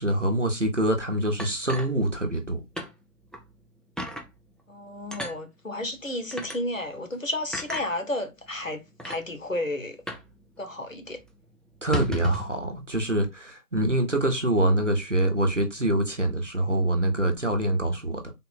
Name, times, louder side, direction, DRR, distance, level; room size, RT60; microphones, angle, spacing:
voice 1, 0.0-2.6 11.8-18.3, right 1 dB, 50° right, 0.8 m, -25 dB
sound 1, 1.4-2.5 2.8-2.9 3.3-3.4 4.0-4.3 5.1-5.4 6.3-6.6 7.5-7.9 8.6-8.7 9.0-9.2 10.1-10.3 10.6-10.7 11.0-11.2 11.8-12.5, equal, ahead, 0.5 m, -33 dB
voice 2, 4.7-10.0 10.6-11.2, left 1 dB, 55° left, 1.0 m, -32 dB
3.7 x 2.1 x 4.0 m
figure-of-eight pair, 175°, 48 cm